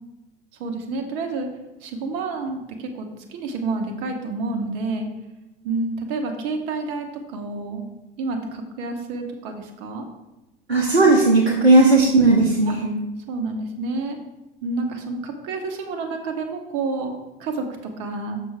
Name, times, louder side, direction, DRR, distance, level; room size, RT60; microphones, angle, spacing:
voice 1, 0.6-1.5 1.8-5.1 5.6-7.9 8.2-10.1 12.7-12.8 13.3-14.2 14.6-18.4, right 3 dB, 55° right, 5 dB, 1.3 m, -29 dB
voice 2, 10.7-12.9, right 2 dB, 85° right, -3 dB, 1.0 m, -16 dB
7.1 x 6.2 x 3.5 m, 1.0 s
figure-of-eight pair, 75°, 31 cm